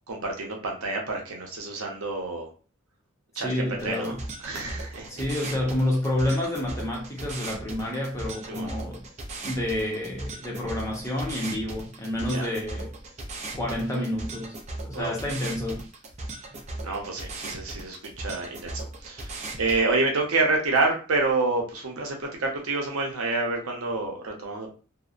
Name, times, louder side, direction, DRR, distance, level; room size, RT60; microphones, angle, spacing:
voice 1, 0.1-2.5 3.3-5.2 6.2-6.3 8.5-8.7 12.3-12.5 14.9-15.1 16.8-24.7, right 3 dB, 90° right, 0.7 m, -28 dB
voice 2, 3.4-4.2 5.1-9.0 9.4-12.9 13.5-14.6 14.8-15.8, left 1 dB, 15° left, 0.6 m, -29 dB
sound 1, 3.8-19.8, right 2 dB, 30° right, 0.4 m, -38 dB
2.7 x 2.1 x 2.4 m
head